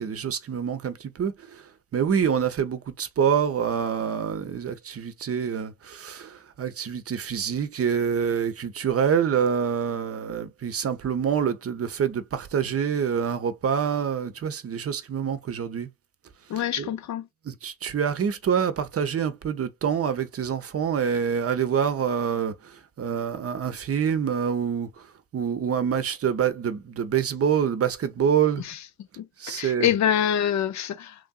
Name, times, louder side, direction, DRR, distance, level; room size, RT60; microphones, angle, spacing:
voice 1, 0.0-1.6 1.9-15.9 16.6-16.9 17.4-25.1 25.3-28.6 29.4-29.9, right 7 dB, 40° right, 0.7 m, -26 dB
voice 2, 16.5-17.2 28.7-28.8 29.2-31.1, left 9 dB, 55° left, 0.5 m, -25 dB
3.2 x 2.6 x 2.3 m
supercardioid pair, 60°, 35 cm